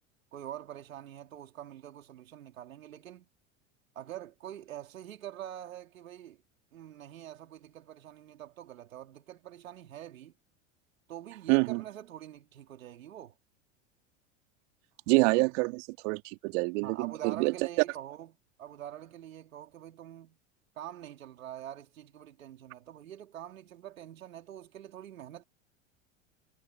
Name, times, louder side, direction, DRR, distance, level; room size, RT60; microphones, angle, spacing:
voice 1, 0.3-3.3 4.0-6.4 6.7-10.3 11.1-13.3 16.8-18.3 18.6-20.4 20.8-25.4, right 11 dB, 80° right, 3.6 m, -45 dB
voice 2, 11.5-11.8 15.1-17.5, right 29 dB, 60° right, 3.0 m, -27 dB
hypercardioid pair, 85°, 40 cm